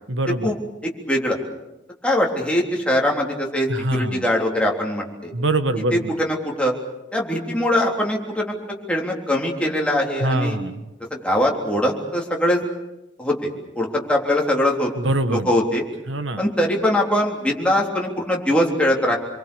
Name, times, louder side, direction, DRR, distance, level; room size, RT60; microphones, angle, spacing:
voice 1, 0.1-0.6 3.7-4.3 5.3-6.1 10.2-10.9 15.0-15.5 16.1-16.4, right 1 dB, 85° right, 10 dB, 1.4 m, -24 dB
voice 2, 0.8-1.4 2.0-5.3 5.9-6.7 7.1-8.6 8.9-10.6 11.1-12.6 13.2-14.9 15.3-15.8 16.4-19.2, left 1 dB, 5° left, -2 dB, 3.5 m, -22 dB
27.5 x 23.0 x 7.0 m, 0.99 s
head